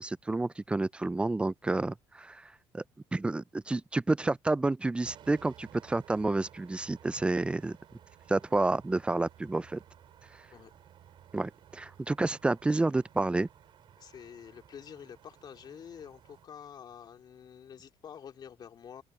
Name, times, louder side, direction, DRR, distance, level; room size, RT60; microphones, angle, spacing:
voice 1, 0.0-2.8 3.1-7.8 8.3-9.8 11.3-13.5, right 2 dB, 10° right, 0.4 m, -30 dB
sound 1, 5.0-16.5, right 10 dB, 55° right, 4.2 m, -56 dB
voice 2, 14.0-19.0, left 8 dB, 45° left, 2.8 m, -48 dB
cardioid pair, 115°, 10 cm